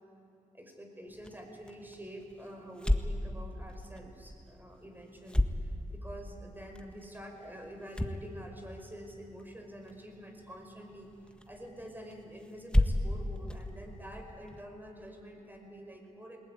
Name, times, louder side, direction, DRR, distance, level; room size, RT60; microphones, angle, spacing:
voice 1, 0.5-16.4, equal, 15° right, 3 dB, 5.4 m, -47 dB
sound 1, 1.1-14.7, left 1 dB, 5° left, 1.7 m, -36 dB
21.0 x 20.0 x 9.6 m, 2.7 s
cardioid pair, 60°, 14 cm